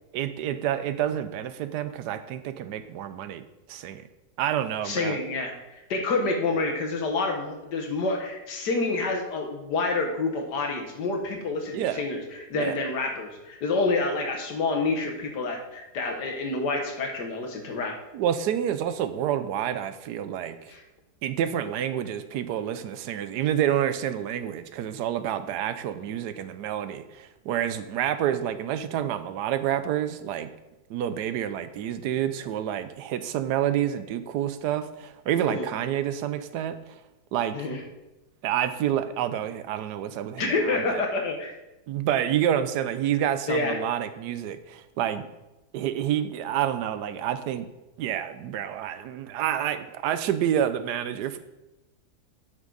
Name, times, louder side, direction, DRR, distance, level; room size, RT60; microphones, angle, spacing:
voice 1, 0.1-3.4 3.7-4.0 4.4-5.2 11.7-12.0 12.5-12.7 18.1-20.6 21.2-30.5 30.9-37.0 37.3-37.6 38.4-41.0 41.9-45.3 45.7-47.7 48.0-51.4, right 10 dB, 80° right, 11 dB, 1.2 m, -28 dB
voice 2, 4.8-12.2 12.5-18.0 20.7-20.8 35.5-35.7 37.5-37.8 40.4-41.5 43.5-43.8, left 3 dB, 85° left, 3 dB, 1.8 m, -28 dB
9.1 x 6.1 x 3.9 m, 1.0 s
omnidirectional pair, 1.8 m